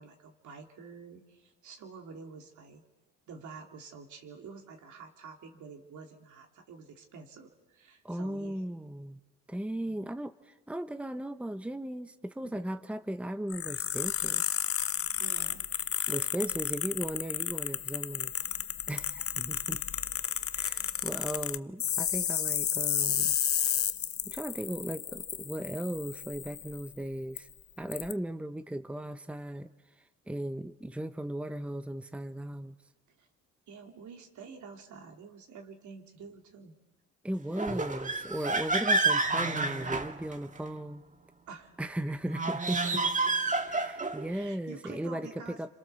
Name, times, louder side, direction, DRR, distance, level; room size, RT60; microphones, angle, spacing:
voice 1, 0.0-2.8 3.3-8.7 9.8-9.9 12.4-12.6 15.2-15.6 19.7-19.8 33.2-33.3 33.7-36.7 41.5-41.7 42.4-42.5 42.8-43.1 43.7-45.7, right 5 dB, 75° right, 3 dB, 3.4 m, -48 dB
voice 2, 8.0-9.2 9.5-14.4 16.1-18.3 18.9-19.8 20.5-23.4 24.2-27.5 27.8-29.7 30.3-32.7 37.2-41.0 41.8-42.8 43.7-45.3 45.6-45.7, right 1 dB, 5° right, 10 dB, 1.0 m, -37 dB
sound 1, 13.5-26.9 27.4-27.5 27.9-28.1, left 10 dB, 50° left, 0.8 m, -32 dB
sound 2, 37.5-40.7 42.3-44.3, right 3 dB, 25° right, 1.7 m, -29 dB
28.5 x 26.5 x 7.0 m, 1.2 s
cardioid pair, 90°, 30 cm